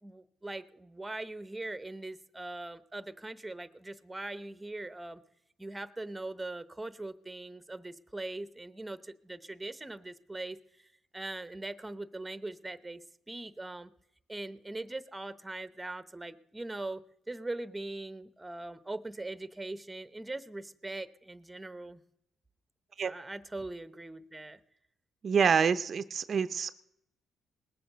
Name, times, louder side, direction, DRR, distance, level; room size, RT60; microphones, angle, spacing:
voice 1, 0.0-5.2 5.6-10.6 11.1-13.9 14.3-17.0 17.3-22.0 23.0-24.6, right 2 dB, 10° right, 14 dB, 0.9 m, -41 dB
voice 2, 25.2-26.7, right 6 dB, 50° right, 11 dB, 0.6 m, -27 dB
19.5 x 7.8 x 6.7 m, 0.78 s
cardioid pair, 90°, 0 cm